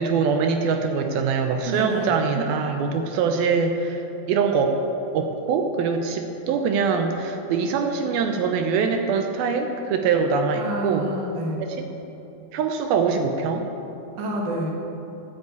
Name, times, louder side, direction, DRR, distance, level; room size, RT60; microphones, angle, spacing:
voice 1, 0.0-4.0 4.3-4.8 5.1-11.1 11.6-11.9 12.5-13.7, right 5 dB, 80° right, 5 dB, 2.5 m, -23 dB
voice 2, 1.6-2.1 10.5-11.6 14.2-14.7, right 1 dB, 50° right, -1 dB, 1.4 m, -28 dB
10.5 x 8.1 x 8.2 m, 2.9 s
omnidirectional pair, 4.5 m